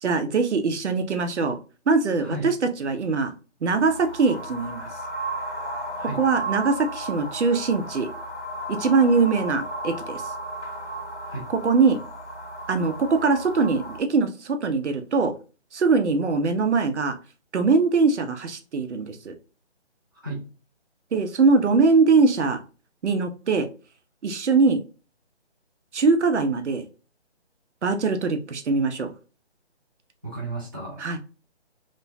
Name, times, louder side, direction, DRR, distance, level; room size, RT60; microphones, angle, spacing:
voice 1, 0.0-1.6 1.9-2.5 2.8-3.3 3.6-4.9 6.2-8.1 8.7-10.2 11.6-12.0 12.7-15.3 15.7-17.1 17.5-19.3 21.1-22.6 23.0-23.7 24.2-24.8 25.9-26.8 27.8-29.1 31.0-31.2, right 4 dB, 80° right, 8 dB, 0.7 m, -22 dB
voice 2, 2.2-2.5 5.9-6.2 11.3-11.5 20.1-20.5 30.2-31.2, right 2 dB, 20° right, -4 dB, 0.4 m, -34 dB
sound 1, 3.7-14.0, right 1 dB, 90° left, 1.6 m, -34 dB
3.0 x 2.2 x 2.6 m, 0.34 s
figure-of-eight pair, 160°, 34 cm